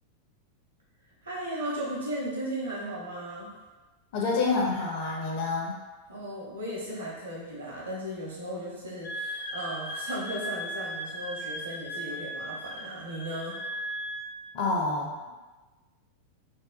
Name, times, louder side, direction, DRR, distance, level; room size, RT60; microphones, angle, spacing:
voice 1, 1.2-3.5 6.1-13.6, right 1 dB, 70° right, -4 dB, 0.8 m, -36 dB
voice 2, 4.1-5.8 14.5-15.3, left 3 dB, 45° left, -2 dB, 0.6 m, -28 dB
Wind instrument woodwind instrument, 9.0-14.3, equal, 85° left, 1.1 m, -37 dB
2.7 x 2.2 x 2.4 m, 1.2 s
figure-of-eight pair, 90°, 0 cm